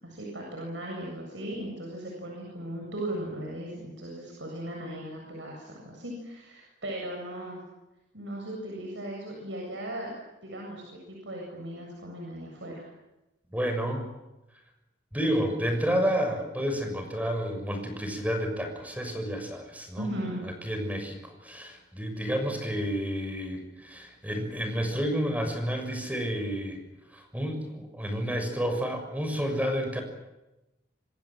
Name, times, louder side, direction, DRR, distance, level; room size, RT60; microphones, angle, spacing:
voice 1, 0.0-7.6 8.1-10.1 10.4-12.8 20.0-20.4, right 1 dB, 80° right, -1 dB, 7.8 m, -37 dB
voice 2, 13.5-14.1 15.1-20.1 20.4-26.8 27.1-30.0, equal, 10° right, 5 dB, 6.6 m, -30 dB
27.0 x 25.5 x 7.7 m, 0.98 s
head